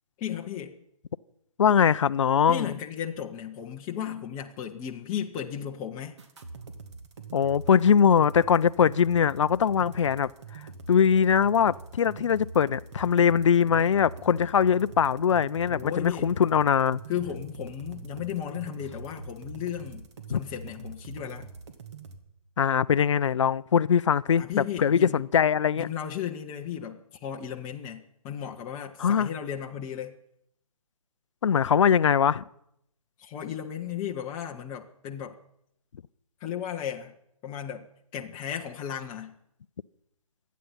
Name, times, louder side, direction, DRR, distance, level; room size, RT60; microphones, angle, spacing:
voice 1, 0.2-0.7 2.5-6.2 15.7-16.3 17.1-21.5 24.4-25.2 25.8-30.1 33.2-35.4 36.4-37.1 37.4-37.9 38.1-39.4, left 9 dB, 15° left, 0.7 m, -35 dB
voice 2, 1.6-2.7 7.3-10.3 10.9-17.0 20.3-20.4 22.6-24.4 24.8-25.9 29.0-29.3 31.4-32.4, left 7 dB, 55° left, 0.5 m, -22 dB
sound 1, 6.2-22.2, right 3 dB, 50° right, 2.1 m, -43 dB
26.0 x 9.4 x 5.6 m
figure-of-eight pair, 140°, 19 cm